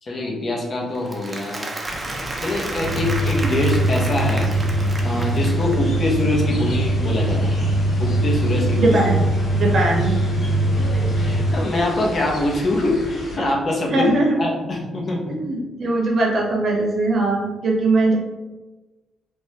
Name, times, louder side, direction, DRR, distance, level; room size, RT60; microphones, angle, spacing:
voice 1, 0.0-1.7 2.4-4.5 5.0-7.6 8.0-8.9 11.2-15.4, left 1 dB, 45° left, -1 dB, 0.6 m, -24 dB
Applause, 0.9-6.0, right 2 dB, 20° right, 0.5 m, -33 dB
sound 1, 1.9-13.4, equal, 65° left, 1.3 m, -34 dB
sound 2, 2.8-11.5, right 1 dB, 15° left, 1.3 m, -21 dB
voice 2, 8.8-9.2 9.5-10.1 13.9-14.3 15.3-18.2, right 2 dB, 50° right, -1 dB, 0.8 m, -20 dB
3.1 x 2.1 x 2.8 m, 1.1 s
cardioid pair, 95°, 0 cm